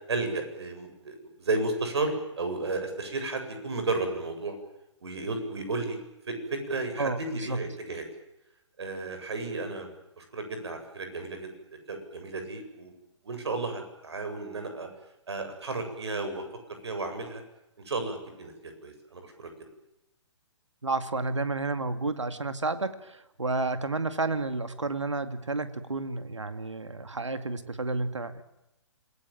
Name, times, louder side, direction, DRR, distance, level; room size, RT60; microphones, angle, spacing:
voice 1, 0.1-4.6 5.0-6.0 6.3-8.0 8.8-9.9 10.2-11.5 11.9-12.9 13.2-14.9 15.3-16.4 16.8-17.4 17.9-19.5, right 3 dB, 60° right, 7 dB, 8.0 m, -33 dB
voice 2, 7.0-7.6 20.8-28.4, right 3 dB, 75° right, 10 dB, 2.3 m, -31 dB
27.0 x 21.0 x 9.1 m, 0.90 s
figure-of-eight pair, 130°, 15 cm